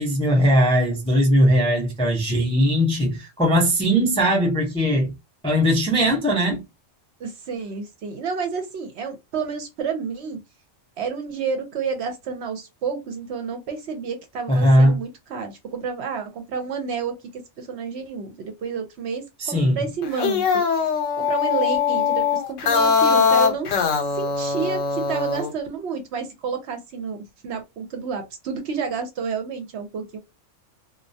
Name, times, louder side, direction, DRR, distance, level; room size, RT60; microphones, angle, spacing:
voice 1, 0.0-5.1 5.4-6.6 14.5-15.0 19.4-19.8, equal, 10° left, 0.4 m, -19 dB
voice 2, 7.2-10.4 11.0-20.9 21.2-23.8 24.1-30.2, right 5 dB, 65° right, 0.8 m, -30 dB
sound 1, 20.0-25.5, left 6 dB, 80° left, 1.0 m, -21 dB
2.2 x 2.1 x 2.6 m
omnidirectional pair, 1.3 m